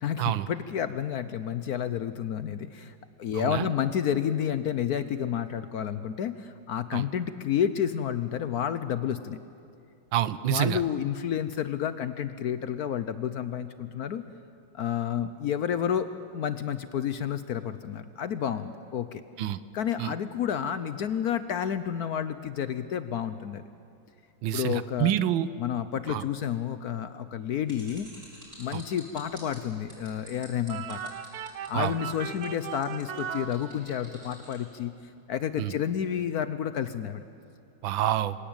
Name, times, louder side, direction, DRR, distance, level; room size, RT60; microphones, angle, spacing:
voice 1, 0.0-2.9 3.2-9.4 10.5-14.2 14.7-19.2 19.7-23.6 24.5-25.1 25.6-28.1 28.6-31.1 31.7-34.9 35.3-37.2, left 9 dB, 65° left, 12 dB, 1.0 m, -30 dB
voice 2, 10.1-10.8 19.4-19.6 20.0-20.1 24.4-25.5 26.1-26.2 28.7-28.8 31.7-31.9 35.6-35.7 37.8-38.4, right 12 dB, 80° right, 15 dB, 1.5 m, -27 dB
sound 1, 27.7-34.6, right 1 dB, 40° right, 7.7 m, -49 dB
sound 2, 30.7-34.2, right 8 dB, 60° right, 1.2 m, -38 dB
26.5 x 17.5 x 8.9 m, 2.4 s
omnidirectional pair, 2.1 m